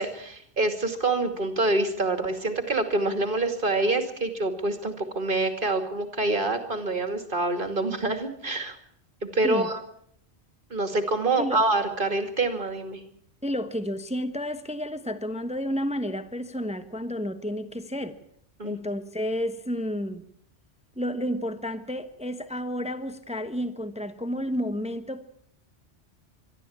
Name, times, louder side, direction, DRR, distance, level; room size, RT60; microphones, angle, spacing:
voice 1, 0.0-8.8 9.3-9.8 10.7-13.0 18.6-18.8, right 2 dB, 45° right, 7 dB, 2.7 m, -26 dB
voice 2, 13.4-18.2 18.6-20.2 21.0-25.2, equal, 5° right, 10 dB, 1.0 m, -31 dB
24.5 x 12.5 x 8.7 m, 0.69 s
omnidirectional pair, 1.2 m